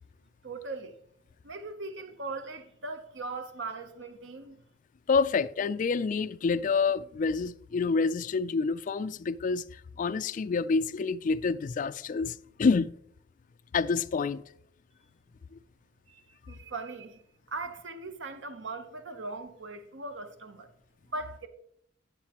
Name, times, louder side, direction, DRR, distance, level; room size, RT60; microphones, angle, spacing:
voice 1, 0.4-0.9 1.4-4.6 16.1-17.2 17.5-20.7 21.1-21.5, right 3 dB, 70° right, 0.8 m, -39 dB
voice 2, 5.1-12.9 13.7-14.4 15.5-15.6, left 4 dB, 45° left, 0.3 m, -28 dB
9.9 x 7.3 x 3.0 m
head